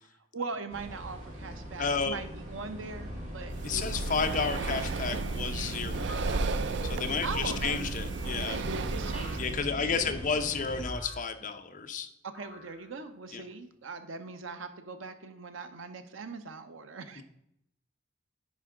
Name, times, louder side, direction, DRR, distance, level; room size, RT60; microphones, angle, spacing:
voice 1, 0.3-3.9 7.2-7.8 8.4-10.2 12.2-17.2, right 4 dB, 85° right, 9 dB, 0.8 m, -40 dB
sound 1, 0.7-10.9, equal, 40° right, 2.0 m, -41 dB
voice 2, 1.8-2.2 3.6-6.3 6.8-8.6 9.4-12.1 13.3-13.4 17.2-17.3, left 5 dB, 40° left, 7 dB, 0.7 m, -32 dB
Breathing, 3.5-9.6, right 3 dB, 60° right, 0.4 m, -33 dB
sound 2, 6.1-6.9 7.5-8.1 9.0-9.6 10.8-11.4 12.3-13.1, left 2 dB, 15° left, 1.6 m, -49 dB
10.5 x 4.6 x 3.7 m, 0.78 s
head